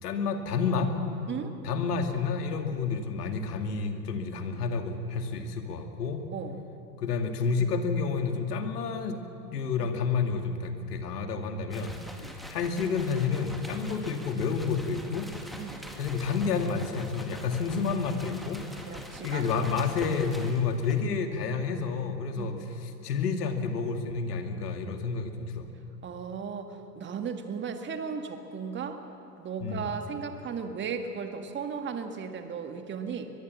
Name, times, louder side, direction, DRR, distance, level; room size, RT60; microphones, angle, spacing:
voice 1, 0.0-1.0 1.6-6.2 7.0-9.2 9.5-12.0 12.3-15.3 15.9-18.6 18.9-22.5 22.8-25.7 29.6-30.0, left 5 dB, 70° left, 6 dB, 2.4 m, -30 dB
sound 1, 11.7-21.1, equal, ahead, 2.1 m, -45 dB
voice 2, 18.8-19.7 22.3-22.6 26.0-29.0 29.4-33.3, right 6 dB, 20° right, 6 dB, 1.9 m, -36 dB
22.5 x 22.0 x 7.4 m, 2.7 s
figure-of-eight pair, 95°, 49 cm